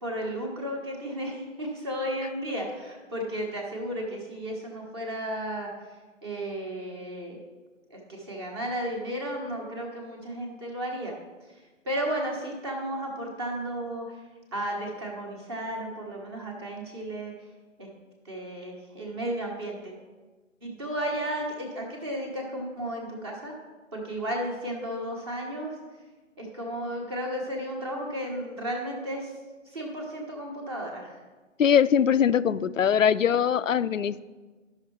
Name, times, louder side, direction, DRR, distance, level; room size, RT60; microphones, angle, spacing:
voice 1, 0.0-5.7 6.2-7.4 7.9-11.1 11.8-14.2 14.5-17.3 17.8-17.9 18.2-19.9 20.6-23.5 23.9-25.8 26.4-29.3 29.7-31.2, equal, 20° right, 0 dB, 1.2 m, -33 dB
voice 2, 31.6-34.2, left 8 dB, 75° left, 15 dB, 0.5 m, -22 dB
12.0 x 5.7 x 4.5 m, 1.3 s
figure-of-eight pair, 155°, 39 cm